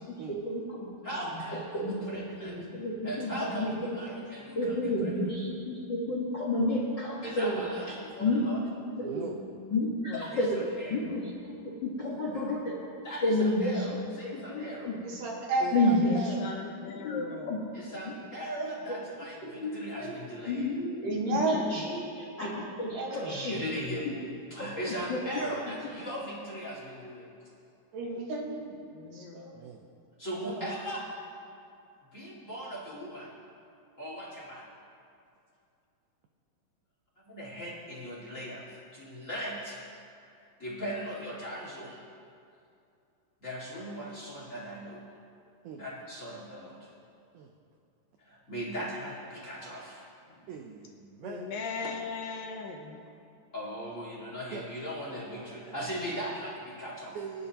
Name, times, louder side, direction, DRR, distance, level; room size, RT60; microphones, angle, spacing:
voice 1, 0.0-0.9 1.3-4.0 4.5-8.4 8.8-9.4 9.7-10.6 10.9-12.8 13.2-13.9 14.3-15.0 15.7-16.3 17.0-17.6 18.0-18.1 18.9-19.0 19.4-20.1 20.5-23.6 24.0-24.1 24.6-25.2, left 1 dB, 50° left, -5 dB, 1.4 m, -31 dB
voice 2, 1.0-2.5 3.0-4.7 7.2-8.6 10.1-10.4 10.8-11.0 13.0-14.9 17.7-20.7 23.3-24.1 24.5-27.5 30.2-31.0 32.1-33.3 34.0-34.6 37.3-39.8 40.3-42.0 43.4-45.0 45.8-46.9 48.2-50.0 50.3-50.5 53.5-57.2, equal, 25° left, -6 dB, 1.8 m, -38 dB
voice 3, 9.0-9.4 12.3-12.6 15.6-16.5 29.5-29.8 45.6-45.8 47.3-47.5 50.5-51.5 54.5-54.7 55.1-55.8 57.1-57.5, right 6 dB, 80° right, 3 dB, 1.8 m, -42 dB
voice 4, 9.9-10.3 16.0-17.7 28.9-29.5 51.2-53.0, left 4 dB, 75° left, 2 dB, 2.4 m, -39 dB
voice 5, 15.0-15.7 21.0-21.8 22.5-22.6 22.9-23.3 27.9-28.8 29.1-29.5 30.4-30.7, right 2 dB, 65° right, -2 dB, 2.9 m, -32 dB
28.5 x 10.0 x 3.0 m, 2.5 s
omnidirectional pair, 4.5 m